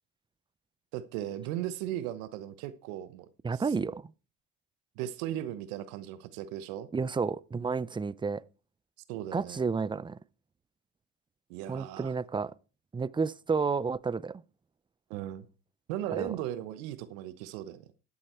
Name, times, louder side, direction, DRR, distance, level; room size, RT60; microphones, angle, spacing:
voice 1, 0.9-3.3 3.5-3.7 5.0-6.9 9.1-9.6 11.5-12.1 15.1-15.5 15.9-17.9, right 12 dB, 85° right, 1.1 m, -37 dB
voice 2, 3.4-4.1 6.9-8.4 9.3-10.2 11.7-12.5 12.9-14.4 16.1-16.3, right 5 dB, 15° right, 0.5 m, -31 dB
13.0 x 8.4 x 4.4 m
supercardioid pair, 90°, 39 cm